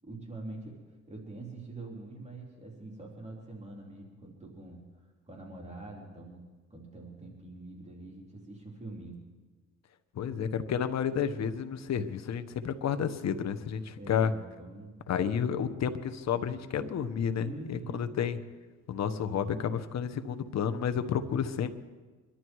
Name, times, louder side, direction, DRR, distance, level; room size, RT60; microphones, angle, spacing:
voice 1, 0.0-0.8 1.1-4.8 5.3-9.2 14.0-15.0 17.4-18.1, right 2 dB, 20° right, -2 dB, 4.2 m, -44 dB
voice 2, 10.1-14.3 15.1-18.4 18.9-21.7, left 7 dB, 60° left, 10 dB, 1.3 m, -31 dB
25.0 x 12.0 x 4.8 m, 1.3 s
cardioid pair, 90°, 30 cm